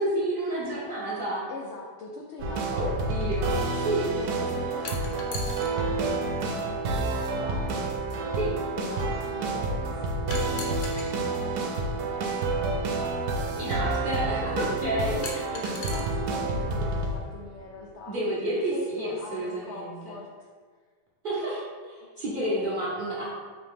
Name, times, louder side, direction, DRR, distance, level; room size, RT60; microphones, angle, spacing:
voice 1, 0.0-1.4 2.7-4.1 8.4-8.5 13.6-15.2 18.1-20.0 21.2-23.2, right 1 dB, 45° right, -7 dB, 0.7 m, -30 dB
voice 2, 1.5-3.1 4.0-7.7 8.8-13.5 14.8-20.3, left 3 dB, 85° left, -2 dB, 0.6 m, -42 dB
sound 1, 2.4-17.4, right 2 dB, 75° right, 1.1 m, -29 dB
sound 2, 4.8-5.7 7.0-7.1 10.3-11.1 12.5-12.6 15.2-16.0, left 3 dB, 60° left, 0.9 m, -37 dB
4.0 x 2.8 x 3.4 m, 1.5 s
omnidirectional pair, 1.7 m